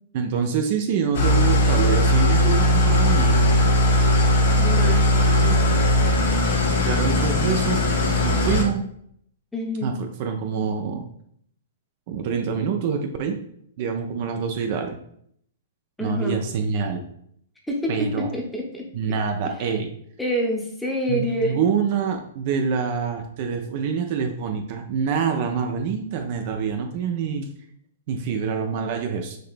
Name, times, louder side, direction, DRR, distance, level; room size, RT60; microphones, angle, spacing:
voice 1, 0.1-3.8 6.5-7.8 8.2-8.8 9.8-11.0 12.1-13.4 13.8-15.0 16.0-17.0 17.9-18.3 18.9-19.9 21.1-27.5 28.1-29.4, right 6 dB, 50° right, 4 dB, 0.4 m, -26 dB
Engine starting / Idling, 1.1-8.6, left 1 dB, 65° left, 0.9 m, -19 dB
voice 2, 4.6-5.9 9.5-10.0 16.0-16.4 17.7-17.9 18.2-18.8 19.6-19.8 20.2-21.6, equal, 5° left, 0 dB, 0.9 m, -27 dB
5.2 x 2.8 x 2.5 m, 0.68 s
hypercardioid pair, 115°, 0 cm